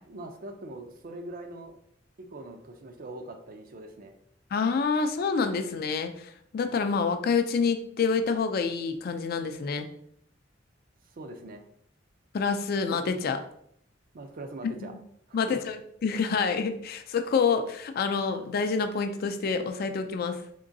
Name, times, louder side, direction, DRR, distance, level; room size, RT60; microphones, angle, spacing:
voice 1, 0.1-1.8 2.2-4.2 11.1-11.6 13.1-13.2 14.1-15.0 15.3-15.6, right 2 dB, 50° right, 5 dB, 0.4 m, -42 dB
voice 2, 4.5-9.9 12.3-13.4 15.3-20.4, left 5 dB, 55° left, 8 dB, 0.3 m, -27 dB
3.7 x 2.9 x 2.6 m, 0.67 s
head